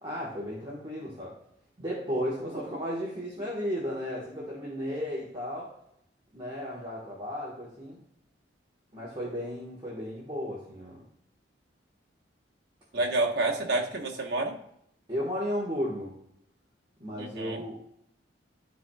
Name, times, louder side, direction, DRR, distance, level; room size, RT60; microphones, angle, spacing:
voice 1, 0.0-1.3 1.8-5.7 6.3-8.0 8.9-11.0 12.9-13.0 15.1-16.2 17.0-17.8, equal, 25° right, -5 dB, 1.4 m, -34 dB
voice 2, 12.9-14.6 17.2-17.6, right 2 dB, 60° right, 0 dB, 1.2 m, -29 dB
12.5 x 4.3 x 2.3 m, 0.73 s
head